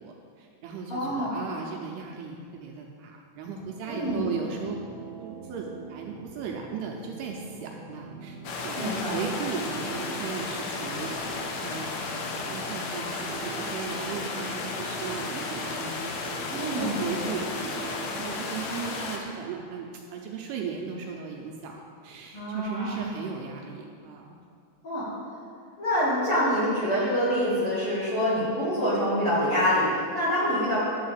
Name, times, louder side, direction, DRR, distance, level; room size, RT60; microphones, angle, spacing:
voice 1, 0.0-4.8 5.2-11.1 11.5-24.4, right 6 dB, 80° right, 0 dB, 2.6 m, -37 dB
voice 2, 0.9-1.4 3.9-4.2 8.8-9.2 16.5-16.9 18.5-18.7 22.3-23.0 24.8-25.1 25.8-30.8, equal, 40° left, -9 dB, 2.3 m, -26 dB
sound 1, 3.5-18.2, right 4 dB, 15° right, 1.8 m, -43 dB
sound 2, 8.4-19.2, left 3 dB, 75° left, 2.2 m, -33 dB
11.0 x 4.8 x 7.4 m, 2.3 s
omnidirectional pair, 5.1 m